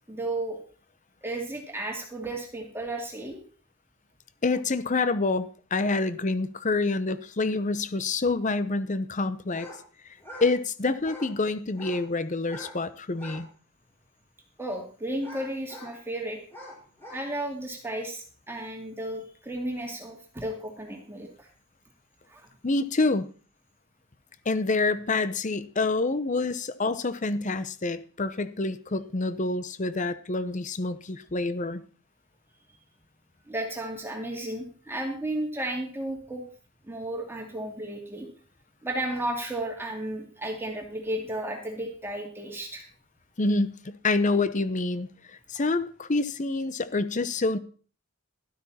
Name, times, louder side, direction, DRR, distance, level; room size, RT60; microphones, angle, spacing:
voice 1, 0.1-0.6 1.2-3.4 14.6-16.4 17.1-21.5 22.3-22.5 33.5-36.4 36.9-38.3 38.8-42.8, right 1 dB, 10° right, 1 dB, 2.4 m, -33 dB
voice 2, 4.4-9.7 10.4-13.5 22.6-23.3 24.5-31.8 43.4-47.6, left 3 dB, 35° left, 14 dB, 0.7 m, -27 dB
sound 1, 9.5-9.8 10.1-10.5 11.0-11.3 11.7-12.1 12.4-12.8 13.1-13.5 14.0-14.1 15.2-16.0 16.5-17.3, left 1 dB, 10° left, 4.4 m, -44 dB
12.5 x 12.0 x 4.2 m, 0.40 s
head